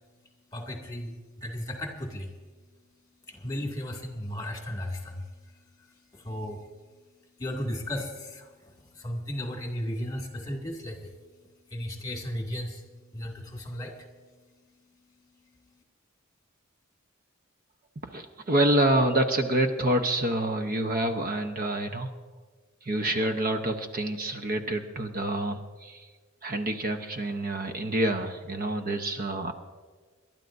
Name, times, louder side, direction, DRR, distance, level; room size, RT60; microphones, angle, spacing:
voice 1, 0.5-2.3 3.3-6.7 7.4-11.2 11.7-15.8, left 1 dB, 20° left, 1 dB, 2.2 m, -36 dB
voice 2, 18.1-22.1 22.9-26.0 26.4-29.5, right 1 dB, 45° right, 6 dB, 0.9 m, -27 dB
28.5 x 12.0 x 2.6 m, 1.4 s
head